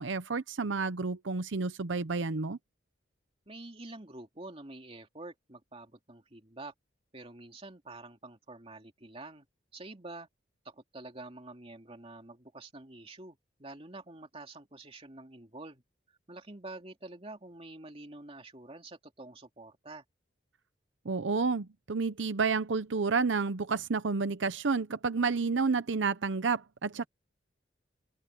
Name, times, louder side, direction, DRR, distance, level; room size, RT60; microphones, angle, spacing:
voice 1, 0.0-2.6 21.0-27.1, right 4 dB, 85° right, 0.8 m, -30 dB
voice 2, 3.5-6.7 7.1-9.5 9.7-10.3 10.6-15.8 16.1-20.0, right 2 dB, 30° right, 2.6 m, -47 dB
open air
head